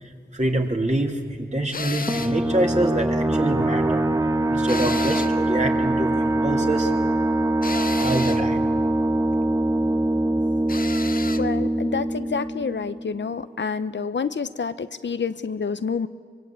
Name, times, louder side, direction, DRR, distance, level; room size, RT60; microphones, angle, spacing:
voice 1, 0.0-4.1 4.5-6.9 8.0-8.6, right 1 dB, 40° right, 2 dB, 3.1 m, -26 dB
sound 1, 1.7-2.4 4.7-5.5 7.6-8.5 10.7-11.5, left 4 dB, 50° left, 0.8 m, -32 dB
sound 2, 2.1-13.4, right 1 dB, 15° right, 1.3 m, -23 dB
voice 2, 11.4-16.1, left 5 dB, 85° left, 12 dB, 0.8 m, -28 dB
24.0 x 23.5 x 8.7 m, 2.1 s
wide cardioid pair, 45°, 18 cm